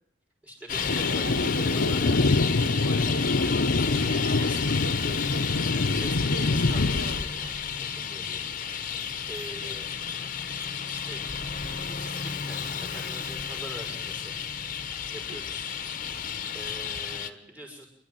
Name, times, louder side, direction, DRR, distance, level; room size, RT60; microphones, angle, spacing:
voice 1, 0.4-2.3 2.8-4.9 5.7-8.8 9.2-9.9 10.9-11.3 11.6-14.5 15.1-15.7 16.5-17.9, right 1 dB, 10° right, 2 dB, 6.0 m, -44 dB
Traffic noise roadway noise, 0.7-17.3, left 7 dB, 50° left, 1.2 m, -32 dB
Thunder, 0.9-7.2, left 2 dB, 75° left, 0.9 m, -25 dB
voice 2, 1.0-3.5 4.8-5.7 6.3-7.3 9.6-9.8 15.3-15.4, equal, 75° right, 6 dB, 1.9 m, -41 dB
28.0 x 12.5 x 9.1 m, 0.72 s
head